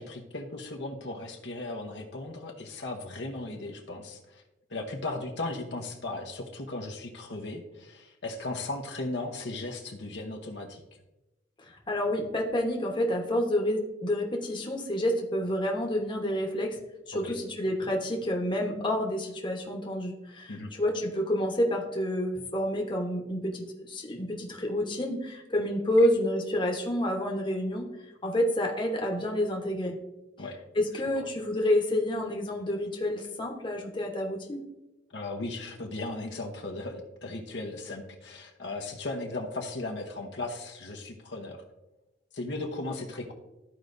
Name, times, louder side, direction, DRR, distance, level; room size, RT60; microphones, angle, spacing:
voice 1, 0.0-4.4 4.7-10.8 17.1-17.3 20.5-20.7 30.4-30.6 31.2-31.3 35.1-41.6 42.3-43.3, left 2 dB, 65° left, 2 dB, 1.0 m, -37 dB
voice 2, 11.7-16.8 17.1-27.9 28.2-30.0 30.7-34.6, left 1 dB, 25° left, 0 dB, 1.1 m, -29 dB
13.5 x 4.8 x 2.6 m, 0.99 s
head